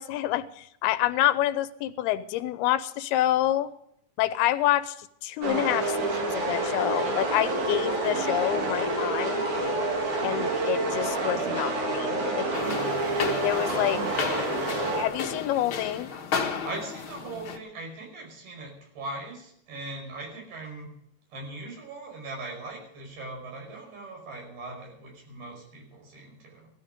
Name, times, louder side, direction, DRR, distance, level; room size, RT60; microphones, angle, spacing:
voice 1, 0.0-3.7 4.2-5.0 5.2-9.5 10.2-12.5 13.3-14.0 15.0-16.1, left 13 dB, 85° left, 12 dB, 2.8 m, -27 dB
sound 1, 5.4-15.0, right 2 dB, 55° right, 3.7 m, -28 dB
sound 2, 12.5-17.6, left 5 dB, 60° left, 1.4 m, -33 dB
voice 2, 16.6-20.9 21.3-26.7, right 2 dB, 75° right, 0 dB, 7.2 m, -40 dB
16.5 x 14.0 x 5.1 m, 0.71 s
omnidirectional pair, 4.5 m